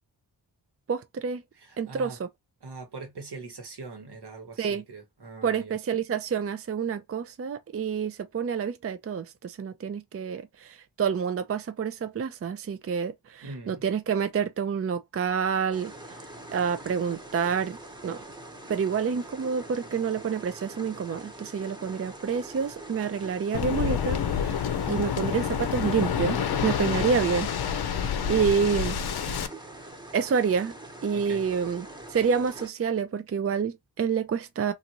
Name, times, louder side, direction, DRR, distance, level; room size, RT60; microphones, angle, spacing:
voice 1, 0.9-1.4 1.8-2.3 4.6-4.8 5.4-15.9 16.5-17.8 18.0-18.2 18.7-27.5 28.3-29.0 30.1-30.7 31.0-34.7, right 6 dB, 35° right, 0.4 m, -28 dB
voice 2, 1.5-2.2 2.6-5.7 13.4-13.8 27.0-27.1 28.0-28.3 29.2-29.6 31.1-31.4, right 3 dB, 70° right, 1.3 m, -42 dB
sound 1, 15.7-32.7, right 2 dB, 10° right, 1.0 m, -44 dB
Waves surf, 23.5-29.5, left 8 dB, 65° left, 0.6 m, -28 dB
2.6 x 2.5 x 2.9 m
cardioid pair, 45°, 40 cm